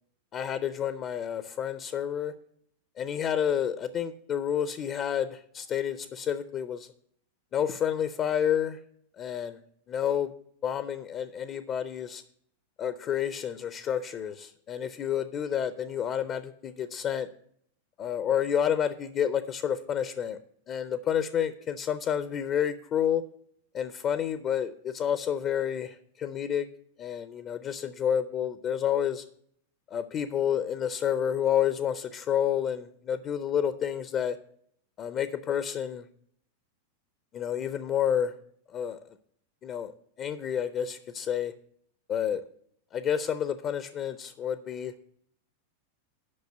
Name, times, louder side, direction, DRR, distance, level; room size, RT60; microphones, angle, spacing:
voice 1, 0.3-2.3 3.0-6.9 7.5-8.8 9.2-9.6 9.9-10.3 10.6-12.2 12.8-17.3 18.0-20.4 20.7-23.2 23.7-26.7 27.0-29.2 29.9-34.4 35.0-36.0 37.3-38.3 38.7-39.0 39.6-39.9 40.2-41.5 42.1-42.4 42.9-44.9, left 9 dB, 35° left, 12 dB, 0.6 m, -29 dB
8.6 x 5.9 x 8.0 m, 0.67 s
hypercardioid pair, 100°, 0 cm